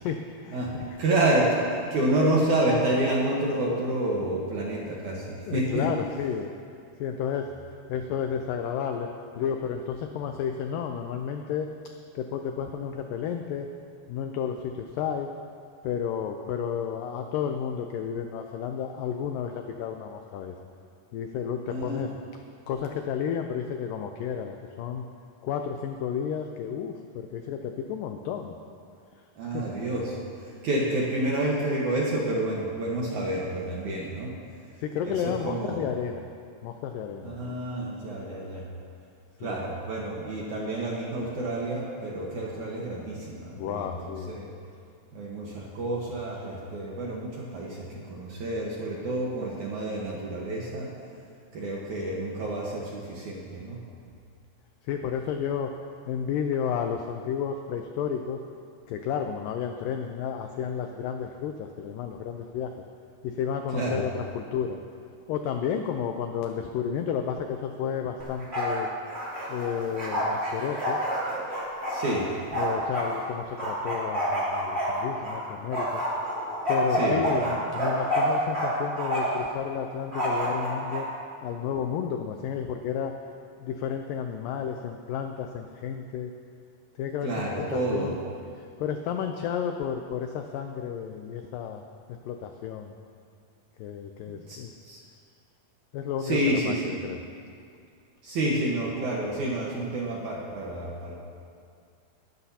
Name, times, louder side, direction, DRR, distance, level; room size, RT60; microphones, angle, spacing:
voice 1, 0.0-1.0 5.5-6.5 7.0-7.5 7.9-11.7 12.2-13.7 14.1-15.3 15.8-20.6 21.1-22.1 22.7-25.1 25.4-28.5 29.5-29.7 34.8-36.3 36.6-37.6 39.4-39.6 43.6-44.3 54.8-55.7 56.1-58.4 58.9-62.9 63.2-64.8 65.3-68.9 69.5-71.0 72.5-76.0 76.7-81.1 81.4-83.2 83.6-86.3 87.0-88.2 88.6-91.8 92.1-92.9 93.8-94.7 95.9-97.2, left 7 dB, 85° left, 5 dB, 1.9 m, -32 dB
voice 2, 0.5-5.9 21.7-22.0 29.4-34.3 35.0-35.8 37.2-38.7 39.4-44.5 45.1-50.9 51.5-53.8 63.7-64.0 71.9-72.3 76.9-77.2 87.2-88.1 94.3-95.0 96.2-96.9 98.2-101.2, right 1 dB, 60° right, -4 dB, 2.3 m, -29 dB
Bark, 68.2-68.8 69.1-73.1 73.6-75.4 75.7-78.7 79.0-79.5 80.1-81.0, equal, 20° right, 2.7 m, -28 dB
22.0 x 12.0 x 2.8 m, 2.3 s
omnidirectional pair, 4.6 m